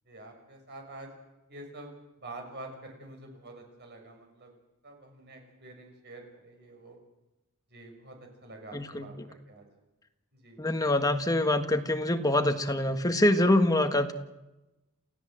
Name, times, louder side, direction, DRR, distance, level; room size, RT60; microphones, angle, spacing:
voice 1, 0.0-1.1 1.5-4.5 4.8-7.0 7.7-9.7 10.3-10.6, right 2 dB, 50° right, 4 dB, 6.3 m, -47 dB
voice 2, 8.7-9.1 10.6-14.1, left 1 dB, 15° left, 6 dB, 1.5 m, -25 dB
29.0 x 15.5 x 7.8 m, 1.0 s
head